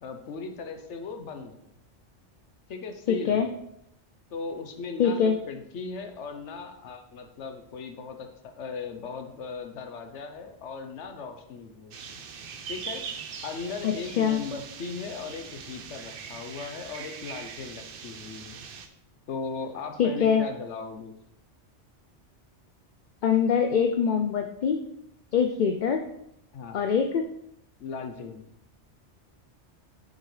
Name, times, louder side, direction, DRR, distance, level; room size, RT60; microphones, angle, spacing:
voice 1, 0.0-1.7 2.7-3.6 4.3-12.2 12.7-13.2 13.4-18.6 19.3-21.1 26.5-26.9 27.8-28.4, left 5 dB, 85° left, 6 dB, 1.1 m, -38 dB
voice 2, 3.1-3.5 5.0-5.4 13.8-14.4 20.0-20.4 23.2-24.8 25.3-26.0 26.7-27.2, left 7 dB, 60° left, 6 dB, 0.5 m, -23 dB
sound 1, 11.9-18.9, right 6 dB, 60° right, 0.8 m, -41 dB
6.5 x 6.4 x 3.2 m, 0.78 s
omnidirectional pair, 1.2 m